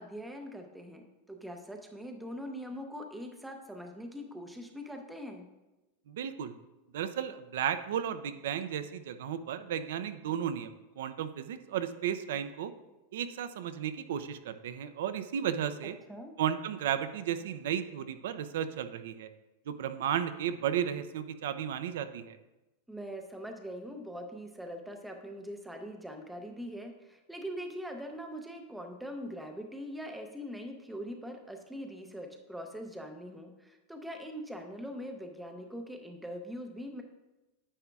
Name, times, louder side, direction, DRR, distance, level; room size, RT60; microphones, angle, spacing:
voice 1, 0.0-5.5 16.1-16.3 22.9-37.0, equal, 5° right, 4 dB, 0.7 m, -42 dB
voice 2, 6.1-6.5 6.9-12.7 13.1-16.0 16.4-19.3 19.7-22.4, right 9 dB, 70° right, 11 dB, 0.5 m, -34 dB
9.8 x 8.7 x 2.3 m, 1.0 s
supercardioid pair, 170°, 0 cm